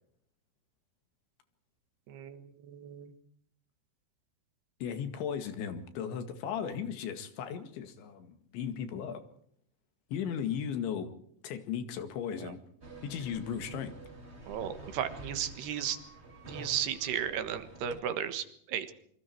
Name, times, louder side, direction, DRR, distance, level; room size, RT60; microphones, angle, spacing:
voice 1, 2.1-3.1 12.4-12.5 14.5-16.0 16.5-18.9, right 9 dB, 70° right, 11 dB, 3.4 m, -35 dB
voice 2, 4.8-9.2 10.1-11.1 11.4-12.6 13.0-13.9, left 8 dB, 85° left, 9 dB, 4.4 m, -36 dB
sound 1, 12.8-18.0, right 2 dB, 15° right, 2.7 m, -48 dB
26.5 x 25.0 x 4.6 m, 0.67 s
omnidirectional pair, 5.1 m